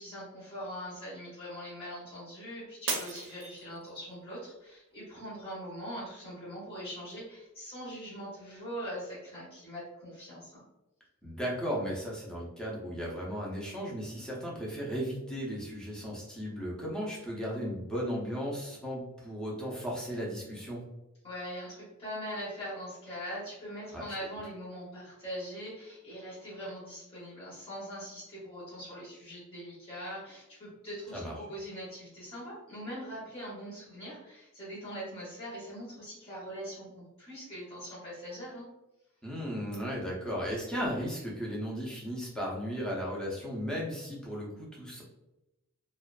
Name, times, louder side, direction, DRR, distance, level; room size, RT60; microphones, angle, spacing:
voice 1, 0.0-10.6 21.2-38.7, equal, 25° left, -9 dB, 0.8 m, -42 dB
Shatter, 2.9-4.1 4.7-5.1 5.7-5.8, right 4 dB, 55° right, 0.5 m, -36 dB
voice 2, 11.2-20.8 23.9-24.0 31.1-31.3 39.2-45.0, equal, 5° left, -4 dB, 0.5 m, -35 dB
2.4 x 2.2 x 2.3 m, 0.95 s
head